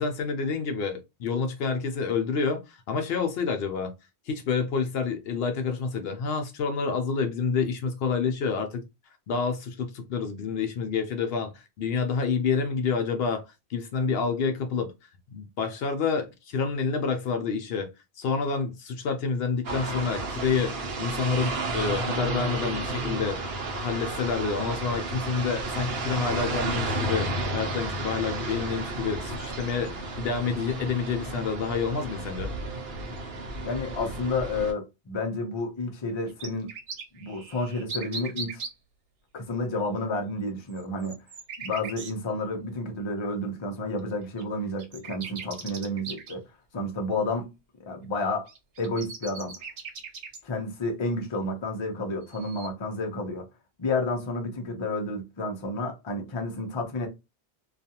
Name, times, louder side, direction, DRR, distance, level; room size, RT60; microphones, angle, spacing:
voice 1, 0.0-3.9 4.3-8.8 9.3-14.9 15.3-17.9 18.2-23.4 23.7-32.5, left 5 dB, 70° left, 0.7 m, -28 dB
sound 1, 19.6-34.7, right 2 dB, 65° right, 0.9 m, -32 dB
voice 2, 33.6-36.7 37.1-38.6 39.3-41.2 41.6-46.5 46.7-47.5 47.8-48.5 48.8-49.6 50.4-53.5 53.8-57.1, left 2 dB, 35° left, 0.5 m, -30 dB
sound 2, 36.1-38.7 40.7-42.1 44.0-44.1 44.4-44.5 44.8-46.4 48.5-50.4 52.2-52.7, right 5 dB, 90° right, 1.0 m, -39 dB
2.4 x 2.3 x 2.7 m
omnidirectional pair, 1.1 m